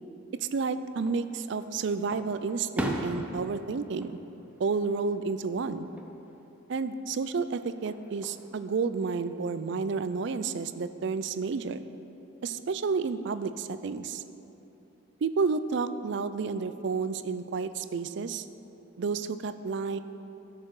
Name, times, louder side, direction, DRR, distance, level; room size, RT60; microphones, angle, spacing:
voice 1, 0.4-4.2 4.6-5.9 6.7-11.8 12.4-14.2 15.2-18.5 19.0-20.0, right 4 dB, 60° right, 12 dB, 0.4 m, -31 dB
Fireworks, 0.9-1.6 2.1-5.2 5.6-6.1 7.7-8.5, equal, 5° right, 0.6 m, -37 dB
12.5 x 6.6 x 4.7 m, 3.0 s
head